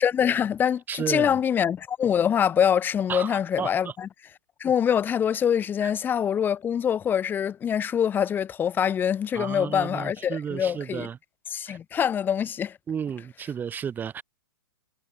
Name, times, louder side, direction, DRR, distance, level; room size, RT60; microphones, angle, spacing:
voice 1, 0.0-4.1 4.6-11.1 11.5-12.7, left 8 dB, 15° left, 1.1 m, -24 dB
voice 2, 0.9-1.4 3.1-3.9 5.8-5.9 9.3-11.2 11.7-11.8 12.9-14.2, right 7 dB, 15° right, 1.4 m, -33 dB
hypercardioid pair, 120°, 11 cm